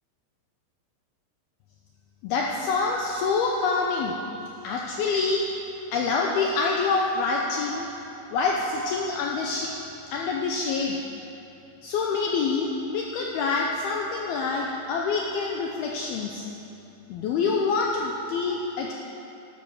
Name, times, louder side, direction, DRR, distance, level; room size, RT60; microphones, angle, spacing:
voice 1, 2.2-4.2 4.6-5.4 5.9-7.9 8.3-9.7 10.1-11.0 11.8-16.4 17.1-18.9, left 4 dB, 75° left, 0 dB, 2.4 m, -26 dB
13.5 x 12.0 x 6.2 m, 2.8 s
omnidirectional pair, 5.2 m